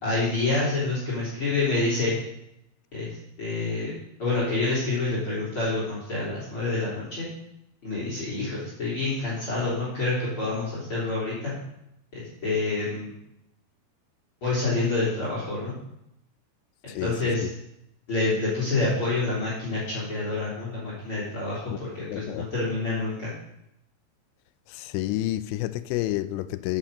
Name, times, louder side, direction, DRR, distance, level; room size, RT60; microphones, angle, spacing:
voice 1, 0.0-2.1 2.9-7.3 7.8-11.5 12.4-13.1 14.4-15.7 16.8-17.5 18.1-23.3, left 3 dB, 30° left, 3.6 m, -27 dB
voice 2, 16.9-17.5 22.1-22.5 24.7-26.8, left 15 dB, 85° left, 2.7 m, -30 dB
9.9 x 8.5 x 5.2 m
omnidirectional pair, 5.0 m